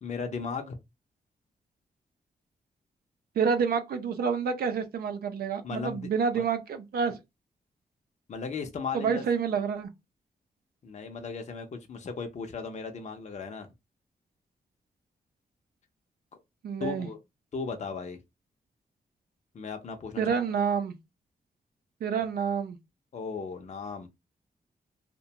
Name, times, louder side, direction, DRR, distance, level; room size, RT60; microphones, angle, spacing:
voice 1, 0.0-0.8 5.6-6.1 6.3-6.4 8.3-9.2 10.8-13.7 16.8-17.2 17.5-18.2 19.5-20.2 23.1-24.1, left 5 dB, 50° left, 0.6 m, -36 dB
voice 2, 3.4-7.2 8.9-9.9 16.6-17.1 20.2-21.0 22.0-22.8, right 6 dB, 90° right, 0.5 m, -28 dB
2.5 x 2.2 x 2.8 m
wide cardioid pair, 105°, 15 cm